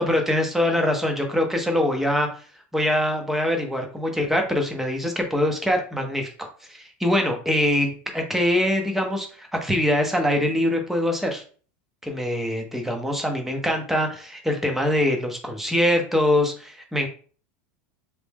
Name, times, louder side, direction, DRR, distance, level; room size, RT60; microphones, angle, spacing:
voice 1, 0.0-2.3 2.7-11.4 12.0-17.1, left 1 dB, 5° right, 3 dB, 0.8 m, -23 dB
3.0 x 2.6 x 3.5 m, 0.41 s
supercardioid pair, 125°, 7 cm